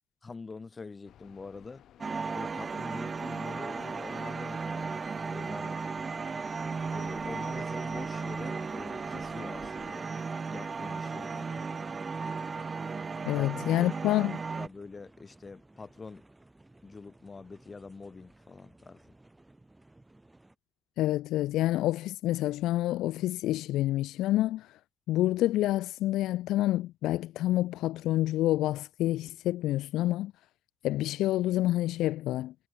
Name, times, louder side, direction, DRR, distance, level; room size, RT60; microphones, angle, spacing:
voice 1, 0.2-1.8 2.3-5.8 6.9-10.1 10.5-11.7 13.3-13.5 13.8-14.3 14.5-16.2 16.8-19.1, left 4 dB, 30° left, 5.8 m, -45 dB
sound 1, 1.0-10.0, left 11 dB, 70° left, 6.3 m, -56 dB
sound 2, 2.0-14.7, right 4 dB, 35° right, 1.0 m, -35 dB
sound 3, 6.6-20.5, right 2 dB, 15° right, 6.6 m, -59 dB
voice 2, 13.3-14.4 21.0-24.7 25.1-30.3 30.8-32.5, left 15 dB, 90° left, 0.4 m, -28 dB
cardioid pair, 90°, 0 cm